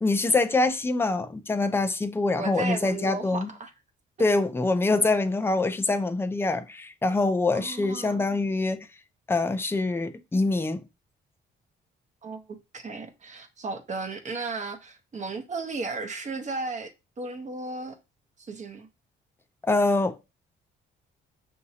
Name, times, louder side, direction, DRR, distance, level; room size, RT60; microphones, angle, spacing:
voice 1, 0.0-3.5 4.2-8.9 9.3-10.8 19.6-20.3, left 2 dB, 10° left, 0.5 m, -25 dB
voice 2, 2.3-3.7 7.5-8.2 12.2-16.9 17.2-18.0 18.5-18.9, right 3 dB, 35° right, 0.9 m, -35 dB
5.8 x 2.7 x 2.7 m
cardioid pair, 90°, 20 cm